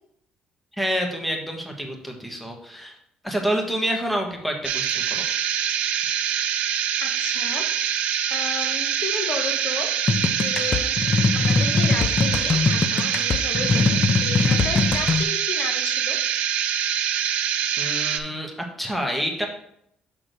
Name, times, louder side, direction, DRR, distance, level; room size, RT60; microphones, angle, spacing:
voice 1, 0.8-2.9 3.2-5.2 17.8-19.5, equal, 5° left, 2 dB, 1.5 m, -28 dB
sound 1, 4.6-18.2, right 9 dB, 80° right, 0.7 m, -25 dB
voice 2, 7.0-7.7 8.3-9.9 10.3-16.2, left 4 dB, 55° left, 4 dB, 1.1 m, -33 dB
sound 2, 10.1-15.2, left 4 dB, 35° left, 0.5 m, -22 dB
6.7 x 3.7 x 6.2 m, 0.71 s
cardioid pair, 110°, 2 cm